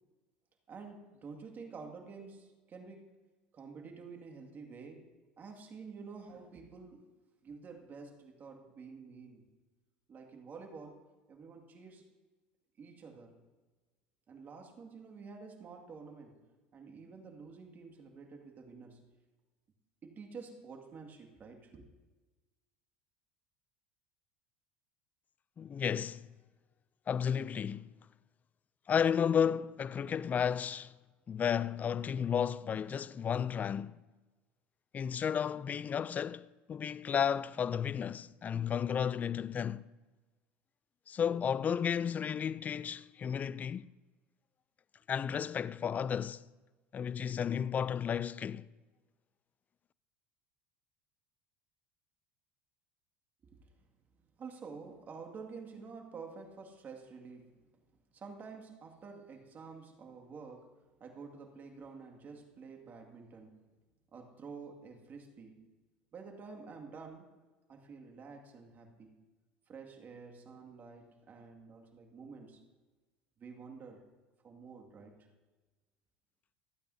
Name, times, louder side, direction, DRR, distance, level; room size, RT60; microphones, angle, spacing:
voice 1, 0.7-3.1 3.5-5.1 5.4-7.1 7.4-9.4 10.1-11.0 11.3-12.1 12.8-13.4 14.3-16.5 16.7-19.1 20.0-21.8 53.4-53.8 54.4-57.7 58.1-63.6 64.1-65.7 66.1-67.3 67.7-69.2 69.7-72.6 73.4-74.1 74.4-75.3, right 5 dB, 40° right, 2.2 m, -49 dB
voice 2, 25.6-26.3 27.1-27.9 28.9-30.9 31.3-34.0 34.9-39.9 41.1-43.9 45.1-46.4 46.9-48.7, left 8 dB, 30° left, 0.4 m, -33 dB
26.5 x 9.0 x 2.8 m
hypercardioid pair, 85°, 5 cm